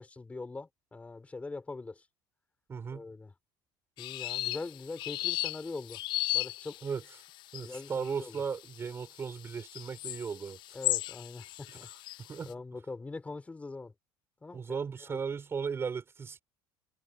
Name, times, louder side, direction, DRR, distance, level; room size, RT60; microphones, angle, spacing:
voice 1, 0.0-2.1 2.9-3.3 4.0-6.0 6.3-6.8 7.6-8.4 10.7-11.9 12.4-13.9 14.4-15.2, left 3 dB, 15° left, 6.6 m, -42 dB
voice 2, 2.7-3.1 6.8-7.0 7.5-10.6 11.7-11.8 12.2-12.5 14.5-16.4, right 6 dB, 25° right, 7.2 m, -36 dB
sound 1, 4.0-12.4, left 17 dB, 55° left, 0.4 m, -36 dB
cardioid pair, 130°, 9 cm